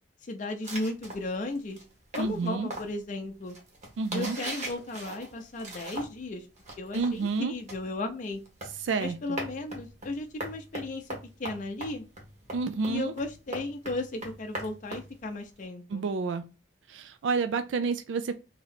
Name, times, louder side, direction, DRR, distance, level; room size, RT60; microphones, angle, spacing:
voice 1, 0.2-1.8 2.2-3.6 4.1-6.5 6.8-8.4 9.0-12.0 12.9-16.0, left 2 dB, 45° left, 0.5 m, -35 dB
sound 1, 0.6-6.3 6.6-15.6, right 1 dB, 40° right, 1.2 m, -40 dB
voice 2, 2.2-2.7 4.0-4.4 6.9-7.5 8.8-9.4 12.5-13.1 15.9-16.5 16.9-18.3, right 4 dB, 85° right, 0.3 m, -29 dB
3.0 x 2.8 x 4.0 m
head